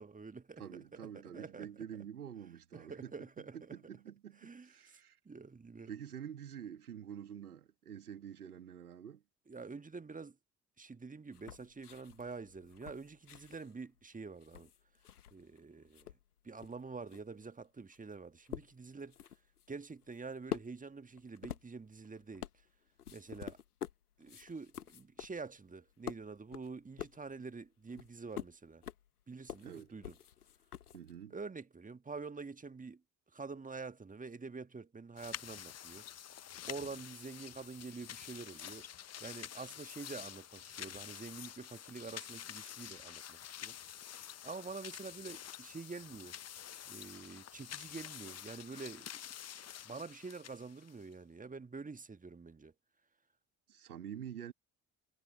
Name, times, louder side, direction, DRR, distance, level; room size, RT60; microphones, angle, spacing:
voice 1, 0.0-1.7 2.7-3.8 4.4-4.7 5.2-5.9 9.5-10.3 10.8-14.7 15.3-16.1 16.4-19.2 19.7-22.5 23.1-23.6 24.2-28.8 29.3-30.1 31.3-33.0 33.3-36.1 36.7-38.9 39.2-43.8 44.4-46.3 46.9-49.1 49.8-52.7, right 4 dB, 20° right, 1.5 m, -47 dB
voice 2, 0.6-3.1 3.5-5.2 5.9-9.2 29.6-29.9 30.9-31.3 53.7-54.5, right 9 dB, 85° right, 2.2 m, -47 dB
sound 1, 11.3-15.6 15.8-31.2, left 10 dB, 85° left, 1.1 m, -48 dB
sound 2, 35.2-51.1, left 10 dB, 35° left, 1.0 m, -48 dB
figure-of-eight pair, 50°, 44 cm